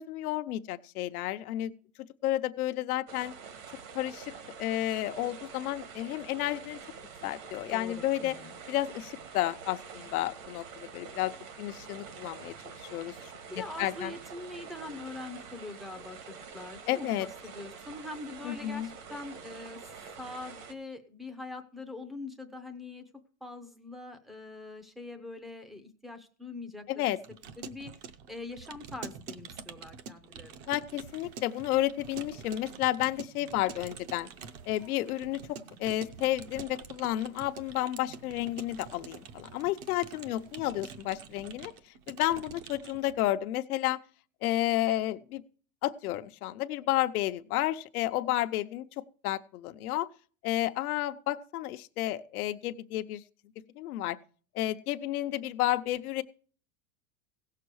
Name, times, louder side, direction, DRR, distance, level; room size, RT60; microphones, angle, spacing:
voice 1, 0.0-1.7 2.2-3.3 3.9-4.3 4.6-6.8 7.2-8.3 8.7-11.3 11.6-13.1 13.8-14.1 16.9-17.3 18.4-18.9 26.9-27.2 30.7-34.3 34.7-41.7 42.1-44.0 44.4-45.4 45.8-48.8 49.2-50.1 50.4-53.2 53.8-54.2 54.5-56.2, left 14 dB, 85° left, 9 dB, 0.8 m, -31 dB
sound 1, 3.1-20.7, right 6 dB, 65° right, 1.9 m, -46 dB
voice 2, 7.7-8.5 13.5-19.8 20.2-23.0 23.4-27.1 27.6-30.7, left 2 dB, ahead, 8 dB, 0.5 m, -43 dB
Keyboard (musical) / Computer keyboard, 27.1-43.2, right 6 dB, 40° right, 0.7 m, -46 dB
sound 2, 30.9-41.6, right 5 dB, 85° right, 2.1 m, -58 dB
17.0 x 6.7 x 4.7 m, 0.42 s
supercardioid pair, 165°, 43 cm